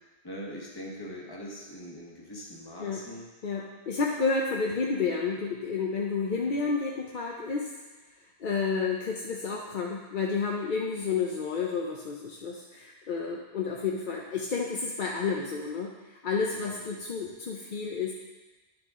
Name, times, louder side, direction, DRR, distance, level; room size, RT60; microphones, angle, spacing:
voice 1, 0.2-3.3 16.5-17.1, equal, 20° left, -2 dB, 1.3 m, -42 dB
voice 2, 3.4-7.7 8.4-18.1, left 5 dB, 55° left, -1 dB, 0.8 m, -30 dB
10.5 x 6.1 x 3.7 m, 1.2 s
omnidirectional pair, 1.1 m